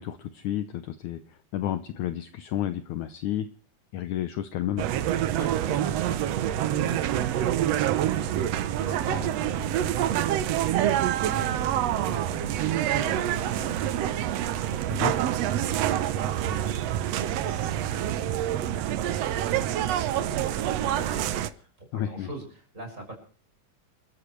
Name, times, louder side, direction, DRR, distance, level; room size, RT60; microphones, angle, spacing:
voice 1, 0.0-3.5 3.9-4.9 15.0-15.1 21.9-22.3, left 11 dB, 70° left, 10 dB, 2.0 m, -31 dB
sound 1, 4.8-21.5, right 11 dB, 80° right, 1.4 m, -26 dB
voice 2, 5.2-7.0 8.1-23.1, right 2 dB, 20° right, 1 dB, 6.6 m, -42 dB
28.5 x 13.0 x 3.2 m, 0.42 s
omnidirectional pair, 4.0 m